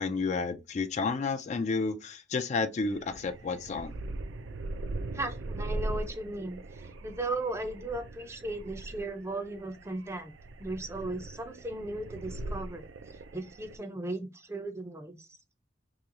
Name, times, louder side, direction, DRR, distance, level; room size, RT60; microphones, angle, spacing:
voice 1, 0.0-3.9, left 4 dB, 40° left, 0.4 m, -31 dB
sound 1, 2.8-13.8, right 2 dB, 75° right, 0.4 m, -40 dB
voice 2, 5.1-10.3 10.6-12.8 13.3-15.3, right 2 dB, 15° right, 0.5 m, -36 dB
3.0 x 2.9 x 3.6 m
head